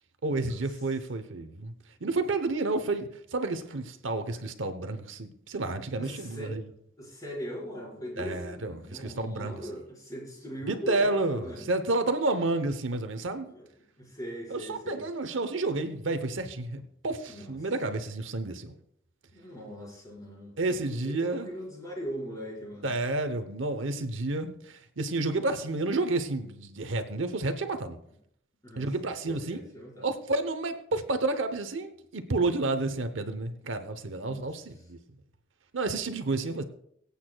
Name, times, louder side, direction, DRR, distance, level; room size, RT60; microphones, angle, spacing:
voice 1, 0.2-1.7 2.0-6.6 8.2-9.7 10.7-13.5 14.5-18.7 20.6-21.5 22.8-28.0 28.7-29.6 30.0-35.0 35.7-36.6, right 2 dB, 75° right, 9 dB, 0.9 m, -30 dB
voice 2, 6.0-6.6 7.0-11.7 13.5-13.7 14.0-15.0 17.3-17.5 19.3-20.5 20.8-22.9 28.6-28.9 29.3-30.1 34.1-34.5, equal, 20° left, -4 dB, 4.9 m, -40 dB
24.0 x 8.4 x 2.3 m, 0.71 s
head